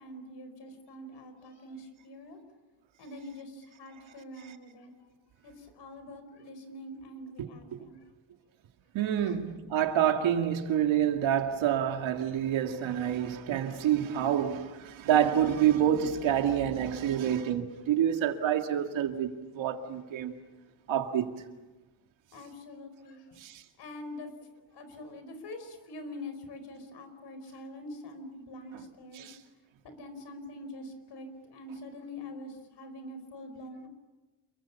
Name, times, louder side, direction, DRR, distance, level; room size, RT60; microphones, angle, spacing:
voice 1, 0.0-2.4 3.0-5.1 5.4-8.0 9.2-9.3 22.3-23.4 23.8-29.3 29.8-33.9, left 1 dB, 55° left, 4.9 m, -45 dB
voice 2, 7.4-7.8 8.9-20.3 20.9-21.4 23.4-23.6 29.1-29.4, right 10 dB, 65° right, 2.4 m, -28 dB
29.0 x 23.0 x 7.1 m
cardioid pair, 170°, 49 cm